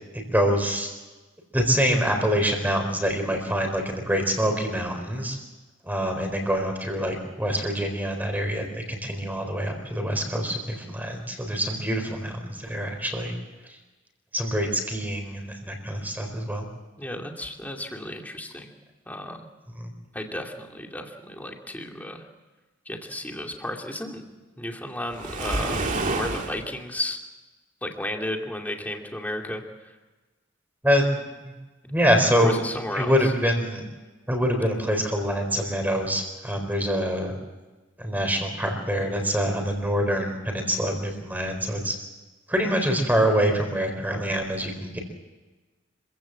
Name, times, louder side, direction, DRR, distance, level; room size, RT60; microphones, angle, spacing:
voice 1, 0.3-0.9 1.5-5.4 5.8-13.3 14.3-16.6 19.8-19.9 30.8-31.1 31.4-31.5 31.9-32.6 32.9-33.8 34.3-37.3 38.0-42.0 42.5-45.0, equal, 10° right, 4 dB, 4.2 m, -25 dB
voice 2, 17.0-18.7 19.1-19.5 20.1-22.3 22.9-24.2 24.6-27.2 27.8-30.0 32.4-33.3, left 1 dB, 10° left, 2 dB, 2.4 m, -33 dB
Waves surf, 25.1-26.6, right 2 dB, 40° right, 2.4 m, -28 dB
26.0 x 16.0 x 7.5 m, 1.2 s
head